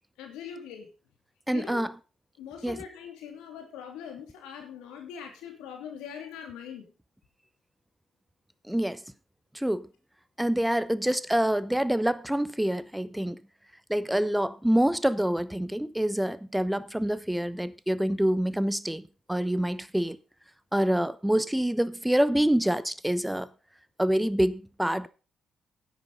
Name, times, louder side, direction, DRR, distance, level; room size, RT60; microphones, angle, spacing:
voice 1, 0.2-0.9 1.5-1.9 2.4-6.9, left 7 dB, 85° left, 2.8 m, -42 dB
voice 2, 1.5-1.9 2.6-2.8 8.7-9.0 9.5-9.9 10.4-13.4 13.9-19.0 19.3-20.2 20.7-23.5 24.0-25.1, right 1 dB, 5° right, 0.9 m, -26 dB
10.5 x 8.2 x 5.4 m
hypercardioid pair, 50°, 0 cm